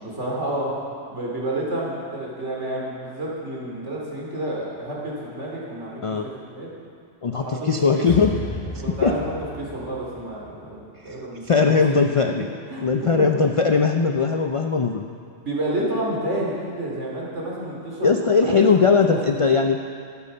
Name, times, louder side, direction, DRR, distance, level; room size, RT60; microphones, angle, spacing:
voice 1, 0.0-6.7 7.3-8.1 8.8-11.8 12.1-13.3 15.4-18.1 18.4-19.3, right 1 dB, 70° right, -4 dB, 3.1 m, -30 dB
voice 2, 7.2-8.4 9.0-9.1 11.0-11.2 11.5-12.5 12.8-15.1 18.0-19.8, left 5 dB, 55° left, 5 dB, 0.3 m, -19 dB
sound 1, 8.1-11.3, left 1 dB, 35° left, 1.8 m, -34 dB
12.5 x 11.5 x 5.5 m, 2.3 s
omnidirectional pair, 1.2 m